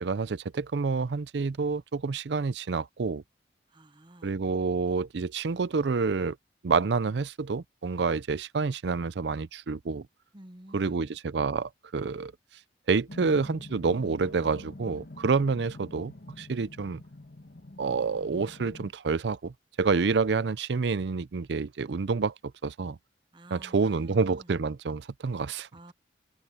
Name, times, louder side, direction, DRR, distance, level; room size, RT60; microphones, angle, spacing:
voice 1, 0.0-3.2 4.2-6.4 6.6-10.1 10.7-12.3 12.9-17.0 17.8-22.3 22.6-23.0 23.5-25.7, right 4 dB, 75° right, 0.5 m, -28 dB
voice 2, 3.7-4.3 10.3-11.1 23.3-24.5 25.7-25.9, right 1 dB, 25° right, 0.9 m, -50 dB
sound 1, 13.1-18.9, left 2 dB, 65° left, 1.5 m, -46 dB
head